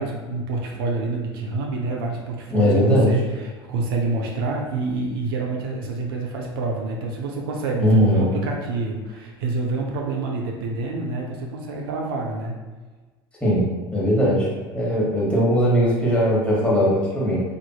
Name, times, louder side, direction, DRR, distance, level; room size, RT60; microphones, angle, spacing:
voice 1, 0.0-12.6, right 3 dB, 65° right, 0 dB, 0.4 m, -27 dB
voice 2, 2.5-3.2 7.8-8.3 13.4-13.7 13.9-14.5 14.7-17.4, equal, 10° left, -6 dB, 1.2 m, -19 dB
2.7 x 2.5 x 2.3 m, 1.3 s
figure-of-eight pair, 70°, 13 cm